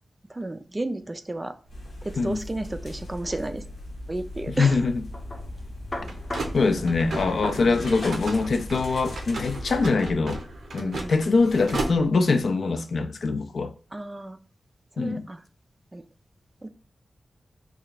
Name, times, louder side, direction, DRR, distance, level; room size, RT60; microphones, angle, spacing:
voice 1, 0.3-1.6 2.0-3.6 4.1-4.9 6.0-6.2 6.6-6.7 7.5-7.9 10.8-11.2 13.9-14.4 15.0-15.4 15.9-16.0 16.6-16.7, right 2 dB, 20° right, 0.3 m, -33 dB
sound 1, 1.7-9.9, left 1 dB, 80° left, 0.8 m, -39 dB
sound 2, 1.7-12.4, right 2 dB, 85° right, 0.6 m, -37 dB
voice 2, 4.6-5.0 6.5-10.4 10.7-13.7 15.0-15.2, left 4 dB, 60° left, 0.3 m, -23 dB
sound 3, 5.0-12.0, left 2 dB, 30° left, 0.7 m, -42 dB
3.2 x 2.3 x 3.9 m
wide cardioid pair, 150°, 0 cm